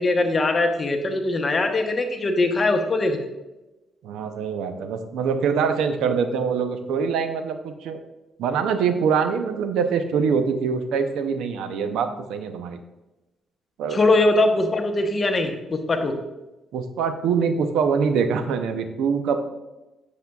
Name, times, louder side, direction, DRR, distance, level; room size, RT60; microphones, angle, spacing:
voice 1, 0.0-3.2 13.9-16.1, left 2 dB, 35° left, 5 dB, 0.9 m, -21 dB
voice 2, 4.0-8.0 8.4-12.8 13.8-14.0 16.7-19.4, right 6 dB, 85° right, 8 dB, 0.6 m, -24 dB
8.1 x 6.7 x 2.4 m, 1.0 s
cardioid pair, 90°, 0 cm